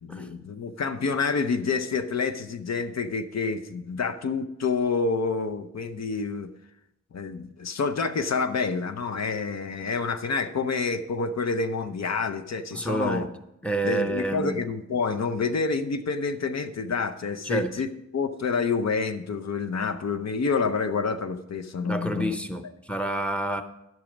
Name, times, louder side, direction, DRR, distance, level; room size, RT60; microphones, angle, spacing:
voice 1, 0.0-6.5 7.1-13.3 13.8-17.9 18.1-22.3, left 4 dB, 65° left, 9 dB, 0.7 m, -28 dB
voice 2, 12.7-13.3 13.6-14.6 17.4-17.7 21.8-23.6, right 1 dB, 5° left, 8 dB, 0.7 m, -28 dB
12.0 x 6.1 x 5.1 m, 0.88 s
wide cardioid pair, 125°, 29 cm